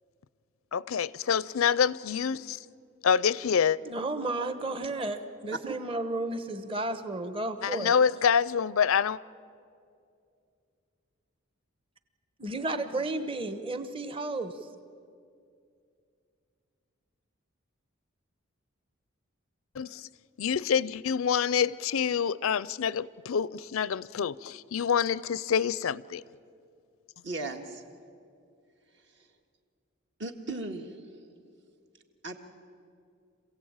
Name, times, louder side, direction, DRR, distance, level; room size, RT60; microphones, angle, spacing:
voice 1, 0.7-2.6 3.0-3.8 7.6-9.2 19.8-20.0 20.4-26.2, left 7 dB, 80° left, 0.5 m, -26 dB
voice 2, 3.8-7.9 12.4-14.6, right 2 dB, 25° right, 1.0 m, -33 dB
voice 3, 27.2-27.8 29.2-29.3 30.2-31.0 32.2-32.3, right 2 dB, 55° right, 1.8 m, -36 dB
27.0 x 16.5 x 8.8 m
head